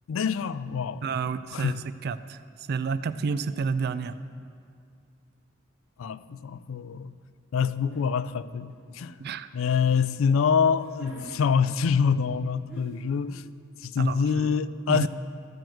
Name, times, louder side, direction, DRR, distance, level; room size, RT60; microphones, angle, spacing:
voice 1, 0.1-1.1 1.5-1.8 6.0-7.1 7.5-9.2 9.5-13.4 13.8-15.1, left 6 dB, 75° left, 0.4 m, -25 dB
voice 2, 1.0-1.7 2.0-2.4 2.7-4.2 9.2-9.5 14.0-14.6 14.9-15.1, right 5 dB, 50° right, 0.4 m, -30 dB
sound 1, 7.9-8.1 8.7-10.0 10.6-11.3 12.3-12.4 12.7-13.2, right 1 dB, 10° right, 2.2 m, -46 dB
13.5 x 4.6 x 7.7 m
head